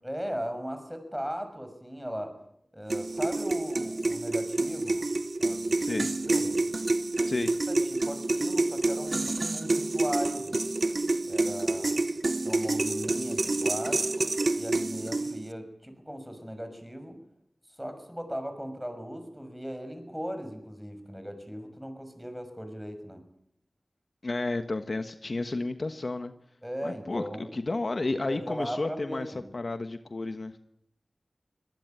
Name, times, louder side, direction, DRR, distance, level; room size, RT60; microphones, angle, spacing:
voice 1, 0.0-2.3 2.7-5.1 5.4-5.9 6.2-6.6 7.7-10.6 11.2-12.0 12.4-14.3 14.5-17.2 17.8-23.2 26.6-27.5 28.3-29.5, equal, 5° right, 7 dB, 6.2 m, -37 dB
sound 1, 2.9-15.5, right 2 dB, 60° right, 0.9 m, -28 dB
voice 2, 5.8-6.1 7.3-7.6 24.2-26.3 26.8-29.3 29.5-30.6, left 2 dB, 60° left, 9 dB, 1.3 m, -32 dB
24.0 x 19.0 x 9.2 m, 0.75 s
wide cardioid pair, 55°, 0 cm